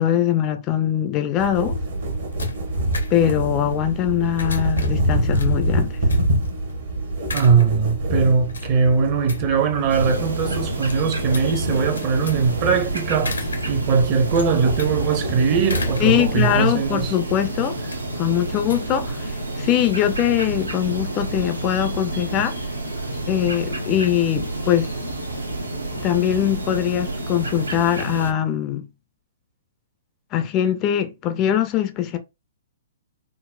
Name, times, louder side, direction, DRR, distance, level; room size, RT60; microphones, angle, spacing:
voice 1, 0.0-1.8 3.1-6.0 16.0-17.8 18.2-22.6 23.3-24.9 26.0-28.9 30.3-32.2, left 11 dB, 25° left, 0.4 m, -22 dB
sound 1, 1.4-16.6, right 1 dB, 55° right, 1.0 m, -26 dB
sound 2, 1.7-19.7, left 4 dB, 70° left, 0.6 m, -39 dB
voice 2, 7.3-13.4 13.7-17.1, right 5 dB, 35° right, 0.6 m, -20 dB
sound 3, 9.9-28.3, right 2 dB, 80° right, 0.7 m, -29 dB
3.9 x 2.0 x 2.2 m
figure-of-eight pair, 115°, 0 cm